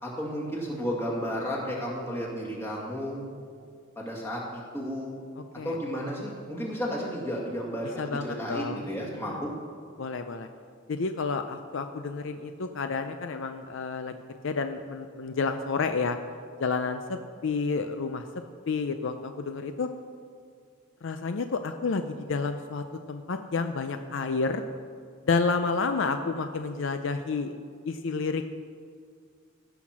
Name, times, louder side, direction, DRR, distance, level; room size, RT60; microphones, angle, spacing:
voice 1, 0.0-3.3 4.0-5.2 5.6-9.5, equal, 10° left, -4 dB, 2.2 m, -33 dB
voice 2, 5.4-5.8 8.0-8.8 9.3-9.4 10.0-10.5 10.9-14.1 14.4-16.2 16.6-18.2 18.7-19.9 21.0-24.7 25.3-27.6 27.8-28.5, left 4 dB, 65° left, 8 dB, 0.5 m, -30 dB
16.0 x 5.9 x 6.0 m, 2.1 s
head